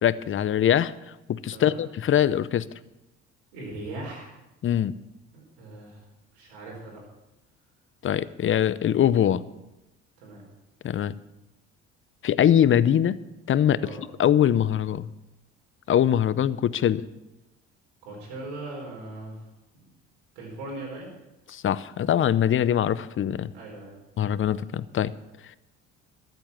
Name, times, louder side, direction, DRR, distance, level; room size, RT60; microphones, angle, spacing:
voice 1, 0.0-0.9 1.3-2.7 4.6-5.0 8.0-9.4 10.8-11.2 12.2-13.2 13.5-13.9 14.2-15.1 15.9-17.0 21.5-23.5 24.2-25.1, left 10 dB, 40° left, 17 dB, 0.7 m, -22 dB
voice 2, 1.5-1.8 3.5-4.4 5.3-6.0 6.3-7.0 10.2-10.4 13.8-14.0 18.0-19.4 19.8-19.9 20.3-21.1 23.5-24.0, right 2 dB, 85° right, -2 dB, 4.4 m, -39 dB
13.5 x 8.0 x 7.4 m, 0.97 s
supercardioid pair, 70°, 32 cm